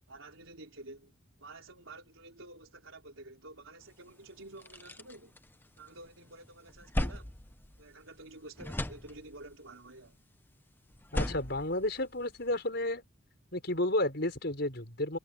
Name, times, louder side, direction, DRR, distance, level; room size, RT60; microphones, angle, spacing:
voice 1, 0.1-1.1 1.4-5.4 5.8-7.4 7.8-10.2, right 2 dB, 85° right, 4.1 m, -50 dB
sound 1, 3.9-4.0 4.4-6.1 6.4-8.3 8.6-9.6 10.9-12.6, left 1 dB, 10° left, 0.8 m, -37 dB
voice 2, 11.1-13.0 13.5-15.2, left 1 dB, 55° left, 5.4 m, -32 dB
head